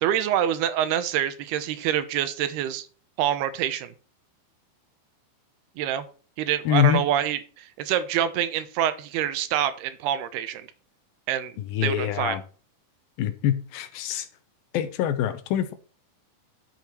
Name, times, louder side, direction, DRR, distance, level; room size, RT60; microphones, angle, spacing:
voice 1, 0.0-2.9 3.2-3.9 5.8-6.0 6.4-10.7 11.3-11.5 11.8-12.4, right 10 dB, 80° right, 12 dB, 2.9 m, -26 dB
voice 2, 6.7-7.0 11.6-12.4 13.2-14.3 14.7-15.7, left 10 dB, 70° left, 11 dB, 2.6 m, -24 dB
11.5 x 7.8 x 4.5 m, 0.39 s
omnidirectional pair, 4.6 m